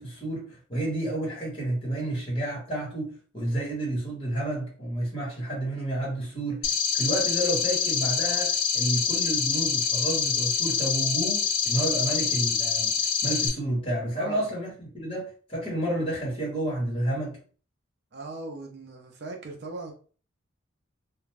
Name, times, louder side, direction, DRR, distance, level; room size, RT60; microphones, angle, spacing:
voice 1, 0.0-17.4, right 1 dB, 25° left, 1.3 m, -30 dB
sound 1, 6.6-13.5, left 6 dB, 75° left, 0.7 m, -26 dB
voice 2, 14.1-14.5 18.1-19.9, right 2 dB, 50° right, 0.5 m, -39 dB
2.4 x 2.2 x 3.2 m
head